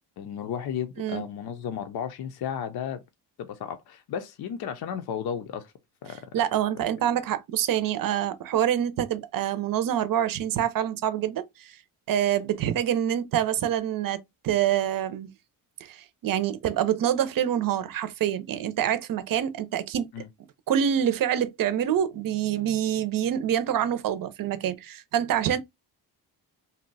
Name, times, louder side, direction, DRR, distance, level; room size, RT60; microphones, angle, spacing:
voice 1, 0.2-3.0 3.4-5.7 6.0-6.3 20.1-20.3, left 8 dB, 65° left, 0.6 m, -34 dB
voice 2, 6.3-11.7 12.1-15.3 15.8-20.1 20.7-25.6, right 10 dB, 55° right, 0.6 m, -26 dB
2.7 x 2.2 x 3.9 m
cardioid pair, 85°, 40 cm